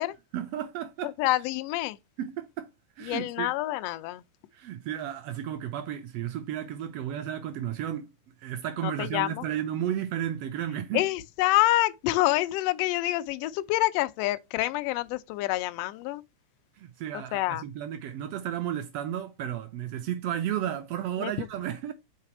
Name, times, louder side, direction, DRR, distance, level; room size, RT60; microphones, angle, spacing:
voice 1, 0.3-1.1 2.2-2.7 3.0-3.5 4.5-8.1 8.4-11.0 16.8-21.9, right 10 dB, 85° right, 1.4 m, -33 dB
voice 2, 1.0-2.0 3.0-4.2 8.8-9.4 10.9-16.2 17.3-17.6 21.2-21.5, left 17 dB, 90° left, 1.4 m, -27 dB
5.6 x 4.2 x 4.4 m
omnidirectional pair, 3.4 m